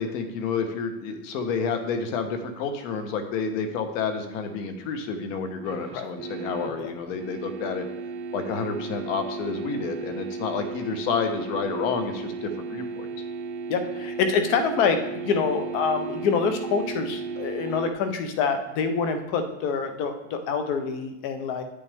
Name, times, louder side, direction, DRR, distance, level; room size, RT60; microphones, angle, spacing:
voice 1, 0.0-7.9 8.3-13.1, left 5 dB, 55° left, 7 dB, 1.2 m, -29 dB
sound 1, 5.6-17.9, right 4 dB, 40° right, 0.7 m, -35 dB
voice 2, 13.7-21.6, left 5 dB, 30° left, 8 dB, 0.6 m, -26 dB
9.4 x 6.8 x 3.5 m, 0.95 s
supercardioid pair, 170°, 48 cm